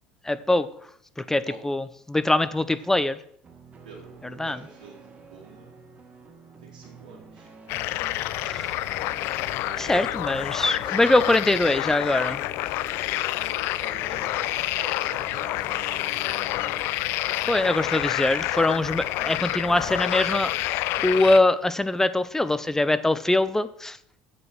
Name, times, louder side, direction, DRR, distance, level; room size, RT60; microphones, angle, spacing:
voice 1, 0.2-0.7 1.2-3.2 4.4-4.6 8.4-9.0 9.8-12.4 17.5-20.5 21.0-24.0, left 2 dB, 10° left, 14 dB, 0.6 m, -23 dB
sound 1, 3.4-20.1, right 3 dB, 30° right, 1.6 m, -48 dB
voice 2, 3.8-5.8 6.6-7.5 9.5-10.1 10.6-11.3 13.5-16.0 16.3-16.8, right 4 dB, 75° right, -4 dB, 2.3 m, -47 dB
sound 2, 7.7-21.4, left 16 dB, 60° left, 0.5 m, -28 dB
7.8 x 7.7 x 6.2 m, 0.68 s
hypercardioid pair, 70°, 5 cm